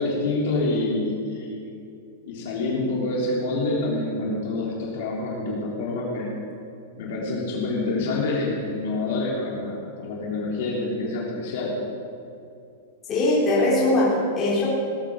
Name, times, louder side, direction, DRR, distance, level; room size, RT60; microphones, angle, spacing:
voice 1, 0.0-1.7 2.3-6.3 7.0-11.7, left 2 dB, 45° left, -4 dB, 3.3 m, -27 dB
voice 2, 13.1-14.7, left 1 dB, 15° left, -7 dB, 3.7 m, -21 dB
17.5 x 8.6 x 7.5 m, 2.5 s
supercardioid pair, 180°, 0 cm